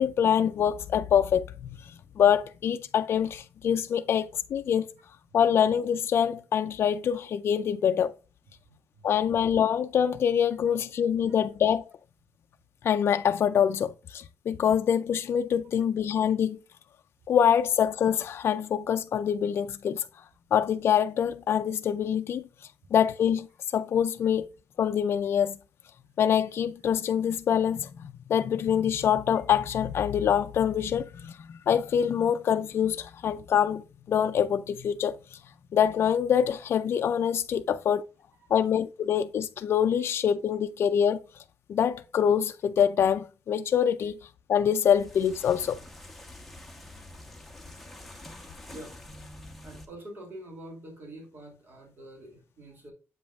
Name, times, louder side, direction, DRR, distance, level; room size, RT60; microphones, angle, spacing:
voice 1, 0.0-1.9 2.2-4.8 5.3-8.1 9.0-11.9 12.8-16.6 17.3-20.0 20.5-22.4 22.9-23.5 23.7-24.5 24.8-25.6 26.2-31.4 31.7-33.8 34.1-35.2 35.7-38.0 38.5-41.2 41.7-44.2 44.5-45.8, left 8 dB, 55° left, 0.4 m, -25 dB
sound 1, 44.8-49.9, left 1 dB, 5° left, 1.1 m, -46 dB
voice 2, 49.6-52.9, right 1 dB, 45° right, 2.7 m, -45 dB
7.8 x 5.3 x 2.4 m
wide cardioid pair, 140°, 5 cm